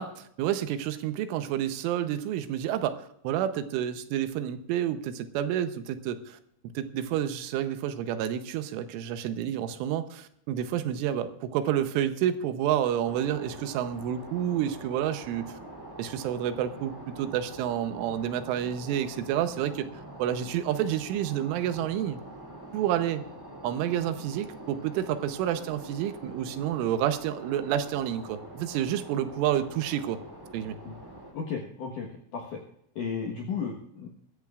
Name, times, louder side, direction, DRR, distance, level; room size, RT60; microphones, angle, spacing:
voice 1, 0.0-6.4 6.7-15.5 16.0-22.2 22.7-23.2 23.6-30.2 30.5-30.8, right 10 dB, 80° right, 10 dB, 3.3 m, -29 dB
sound 1, 13.0-31.3, right 1 dB, 10° right, 1.5 m, -45 dB
voice 2, 31.3-32.1 32.3-32.6 33.0-34.1, left 6 dB, 70° left, 0 dB, 1.9 m, -34 dB
21.0 x 14.0 x 2.4 m, 0.71 s
omnidirectional pair, 5.7 m